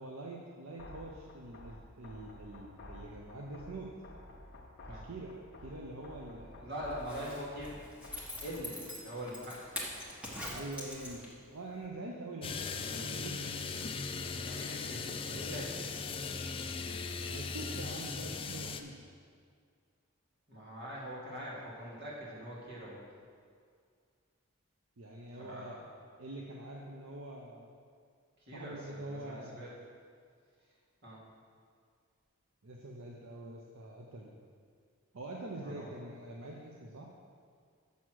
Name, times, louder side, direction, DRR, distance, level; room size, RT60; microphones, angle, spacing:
voice 1, 0.0-3.9 4.9-5.3 5.6-6.7 10.5-13.7 17.3-18.9 25.0-25.8 26.2-27.8 28.5-29.7 32.6-34.3 35.1-37.1, right 2 dB, 75° right, -1 dB, 0.8 m, -45 dB
sound 1, 0.8-8.8, left 1 dB, 55° left, 0.9 m, -52 dB
voice 2, 6.6-7.8 8.4-9.7 14.4-16.0 20.5-23.1 25.4-25.8 28.4-29.7 31.0-31.2 35.5-35.9, equal, 55° right, -5 dB, 2.4 m, -43 dB
Zipper (clothing), 6.9-11.5 11.8-11.9, left 1 dB, 5° right, 1.3 m, -43 dB
sound 2, 12.4-18.8, left 4 dB, 25° left, 0.4 m, -38 dB
7.1 x 6.2 x 6.2 m, 2.1 s
head